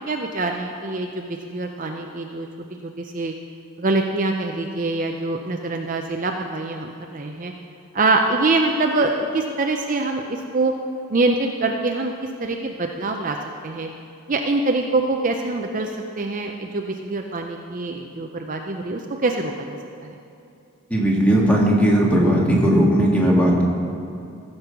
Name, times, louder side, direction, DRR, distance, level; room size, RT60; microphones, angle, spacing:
voice 1, 0.1-2.5 2.8-3.3 3.8-7.5 7.9-10.7 11.1-12.1 12.4-13.4 13.6-13.9 14.3-19.8 20.0-20.1, right 3 dB, 35° right, 3 dB, 0.5 m, -24 dB
voice 2, 20.9-23.6, equal, 5° left, -3 dB, 1.7 m, -17 dB
15.5 x 5.4 x 6.8 m, 2.6 s
head